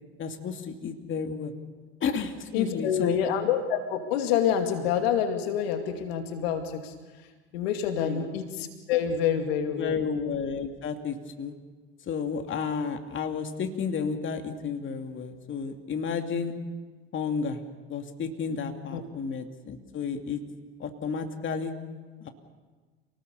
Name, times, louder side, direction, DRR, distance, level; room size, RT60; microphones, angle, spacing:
voice 1, 0.2-1.5 2.0-3.2 8.0-8.3 9.8-11.5 12.1-16.6 17.1-17.6 17.9-20.4 20.8-21.7 22.2-22.3, left 6 dB, 40° left, 5 dB, 2.7 m, -32 dB
voice 2, 2.5-6.9 7.5-10.0 18.9-19.0, left 8 dB, 75° left, 6 dB, 2.4 m, -27 dB
28.5 x 19.0 x 7.0 m, 1.4 s
hypercardioid pair, 80°, 31 cm